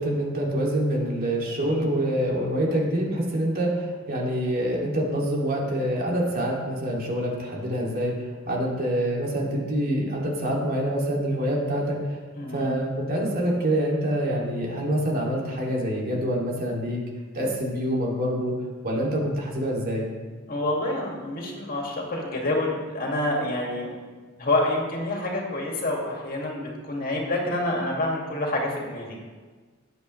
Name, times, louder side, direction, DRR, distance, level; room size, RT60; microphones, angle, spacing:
voice 1, 0.0-12.2 12.5-17.0 17.3-18.5 18.8-20.1, right 1 dB, 45° right, -2 dB, 2.5 m, -26 dB
voice 2, 12.4-12.8 20.5-23.9 24.4-29.2, left 1 dB, 45° left, -1 dB, 2.2 m, -27 dB
18.0 x 8.2 x 3.2 m, 1.4 s
head